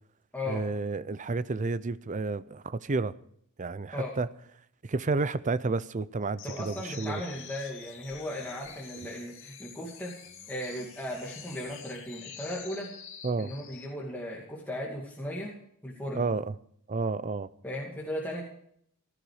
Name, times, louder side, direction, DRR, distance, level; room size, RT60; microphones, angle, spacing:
voice 1, 0.5-3.1 3.6-4.3 4.8-7.2 13.2-13.5 16.1-16.5 16.9-17.5, right 3 dB, 35° right, 0.5 m, -31 dB
sound 1, 6.4-13.9, left 8 dB, 60° left, 2.2 m, -47 dB
voice 2, 6.4-10.1 10.5-12.9 13.4-15.5 15.8-16.3 17.6-18.4, left 1 dB, 10° left, 2.4 m, -36 dB
16.0 x 13.0 x 4.9 m
head